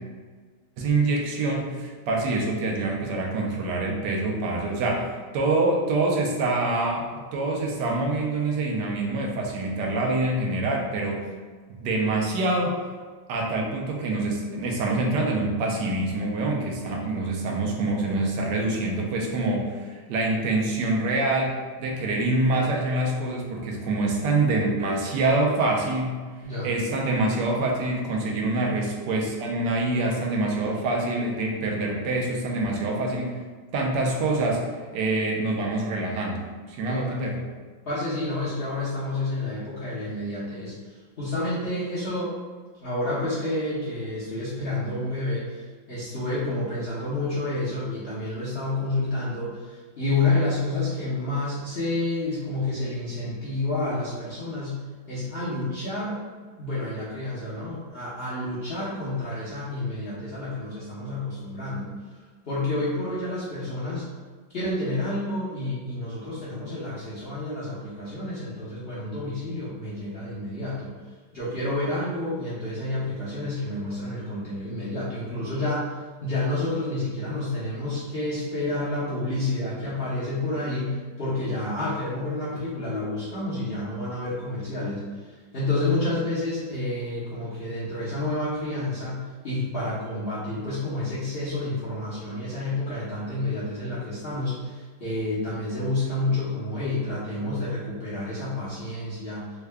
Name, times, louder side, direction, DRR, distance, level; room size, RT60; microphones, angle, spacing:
voice 1, 0.8-11.2 11.7-12.8 13.3-26.1 26.6-33.4 33.7-34.6 34.9-37.3, right 2 dB, 75° right, -1 dB, 1.2 m, -25 dB
voice 2, 37.9-42.3 42.8-56.2 56.6-62.2 62.5-64.1 64.5-70.9 71.3-75.9 76.2-99.4, left 2 dB, 50° left, -10 dB, 0.7 m, -29 dB
3.6 x 2.2 x 3.3 m, 1.5 s
omnidirectional pair, 2.0 m